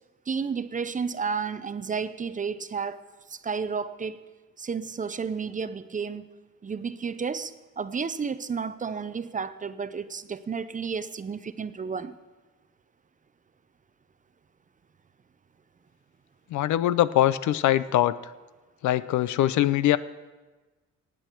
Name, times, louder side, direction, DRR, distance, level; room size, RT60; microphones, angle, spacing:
voice 1, 0.3-4.3 4.6-6.3 6.6-12.2, right 5 dB, 25° right, 13 dB, 0.5 m, -32 dB
voice 2, 16.5-18.2 18.8-20.0, left 13 dB, 75° left, 16 dB, 0.5 m, -22 dB
17.5 x 8.5 x 4.5 m, 1.2 s
cardioid pair, 90°, 30 cm